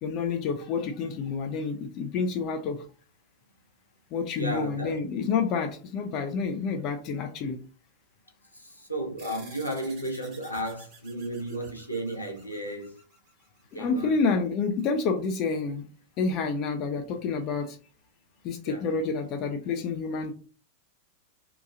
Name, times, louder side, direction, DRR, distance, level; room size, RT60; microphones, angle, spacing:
voice 1, 0.0-2.8 4.1-7.6 13.7-15.9 16.2-17.8 18.4-20.3, left 5 dB, 40° left, 0.4 m, -29 dB
voice 2, 4.3-5.0 8.5-13.0 13.7-14.2 18.6-18.9, right 1 dB, 85° left, 0.6 m, -34 dB
sound 1, 9.2-14.0, right 3 dB, 45° right, 1.2 m, -52 dB
2.8 x 2.2 x 2.4 m
figure-of-eight pair, 90°, 0 cm